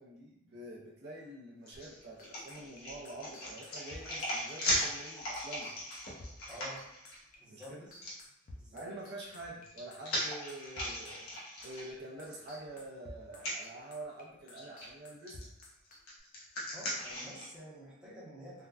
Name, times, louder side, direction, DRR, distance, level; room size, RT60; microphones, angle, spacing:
voice 1, 0.0-5.7 7.5-7.9 8.7-11.3 11.6-15.4, right 2 dB, 50° right, -3 dB, 0.5 m, -47 dB
sound 1, 1.7-7.2 8.0-8.1 9.3-12.3 12.7-12.8 13.3-13.6 14.5-14.9 15.3-17.5, left 1 dB, 85° left, 1.0 m, -38 dB
sound 2, 2.2-11.9 12.2-16.2, left 1 dB, 40° left, 0.5 m, -51 dB
voice 2, 6.5-6.9 7.4-7.9 8.6-8.9 16.7-18.7, equal, 5° right, -8 dB, 0.7 m, -49 dB
3.5 x 2.1 x 2.3 m, 0.84 s
head